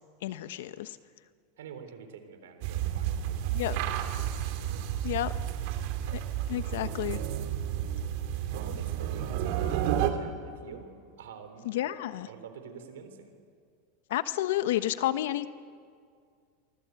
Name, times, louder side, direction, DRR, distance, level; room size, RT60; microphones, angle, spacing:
voice 1, 0.2-1.0 3.5-3.8 5.0-5.3 6.5-7.2 11.7-12.3 14.1-15.5, left 14 dB, 75° left, 12 dB, 1.0 m, -30 dB
voice 2, 1.6-5.2 5.5-5.8 8.5-10.9 11.2-11.9 12.3-13.3, right 7 dB, 90° right, 8 dB, 3.9 m, -47 dB
sound 1, 2.6-10.1, right 10 dB, 60° right, 2.6 m, -31 dB
29.0 x 24.0 x 8.3 m, 2.2 s
supercardioid pair, 140°, 0 cm